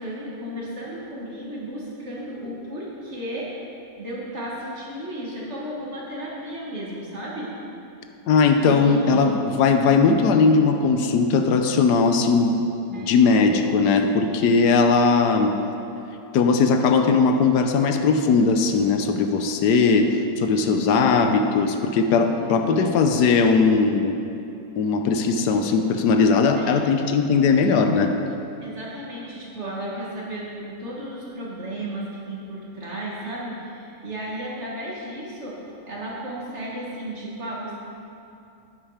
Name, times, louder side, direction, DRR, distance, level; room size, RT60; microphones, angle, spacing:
voice 1, 0.0-3.5 4.0-7.5 8.6-9.3 12.9-13.5 14.0-14.4 20.9-21.2 22.3-23.0 26.6-26.8 28.6-35.6 35.9-37.8, right 1 dB, 40° right, -5 dB, 2.1 m, -34 dB
voice 2, 8.3-12.6 12.9-15.5 16.3-24.1 24.8-28.1, left 4 dB, 80° left, 6 dB, 1.2 m, -19 dB
10.0 x 8.9 x 4.9 m, 2.8 s
omnidirectional pair, 1.8 m